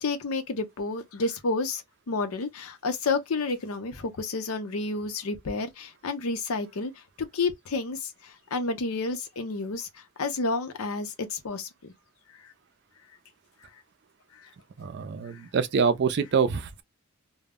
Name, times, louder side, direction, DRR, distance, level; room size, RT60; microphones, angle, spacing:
voice 1, 0.0-1.8 2.1-6.9 7.3-9.9 10.2-11.7, left 3 dB, 85° left, 0.6 m, -30 dB
voice 2, 14.8-16.8, right 5 dB, 50° right, 0.4 m, -25 dB
2.1 x 2.0 x 3.5 m
head